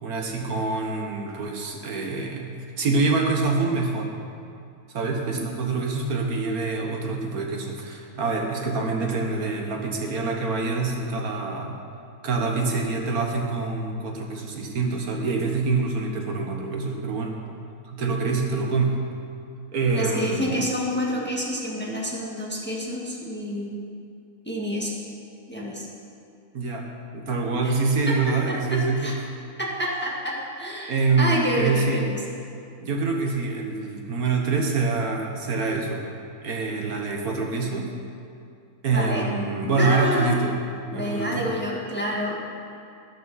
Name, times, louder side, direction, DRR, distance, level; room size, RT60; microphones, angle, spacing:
voice 1, 0.0-4.1 4.9-11.8 12.2-17.4 17.9-18.9 19.7-20.6 26.5-26.9 27.1-29.2 30.9-32.0 32.8-36.0 36.4-37.9 38.8-40.5 40.9-41.4, right 3 dB, 75° right, 2 dB, 1.6 m, -25 dB
voice 2, 19.9-23.9 24.4-24.9 25.5-25.9 27.6-27.7 28.1-29.1 29.6-32.2 38.9-39.3 39.7-40.3 40.9-42.4, equal, 5° left, -3 dB, 1.5 m, -28 dB
12.5 x 12.0 x 4.1 m, 2.5 s
omnidirectional pair, 1.6 m